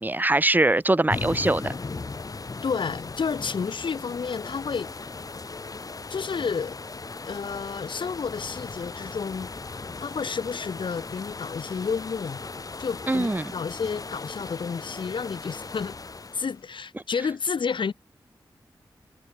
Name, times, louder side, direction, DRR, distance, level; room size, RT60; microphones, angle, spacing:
voice 1, 0.0-1.7 13.1-13.5, right 2 dB, 20° right, 1.8 m, -22 dB
sound 1, 1.1-16.6, left 3 dB, 45° left, 6.9 m, -37 dB
voice 2, 2.6-4.9 5.3-5.4 6.1-6.8 7.2-9.5 10.0-12.4 12.8-16.0 16.3-17.9, left 5 dB, 75° left, 7.1 m, -30 dB
wide cardioid pair, 80°, 8 cm